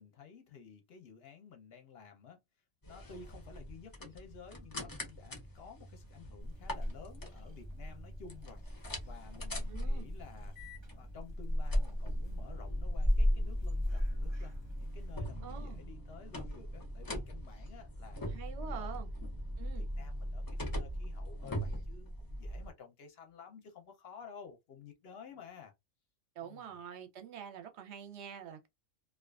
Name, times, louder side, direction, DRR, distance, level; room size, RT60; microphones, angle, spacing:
voice 1, 0.0-2.4 2.9-19.0 19.4-25.7 26.4-26.8, left 6 dB, 60° left, 0.7 m, -53 dB
sound 1, 2.8-22.7, equal, 35° left, 0.3 m, -41 dB
Purr / Meow, 6.4-15.2, equal, 25° right, 0.7 m, -36 dB
voice 2, 9.7-10.1 15.4-15.8 18.3-19.1 19.6-19.8 26.4-28.7, right 8 dB, 65° right, 0.8 m, -46 dB
2.3 x 2.3 x 2.2 m
omnidirectional pair, 1.4 m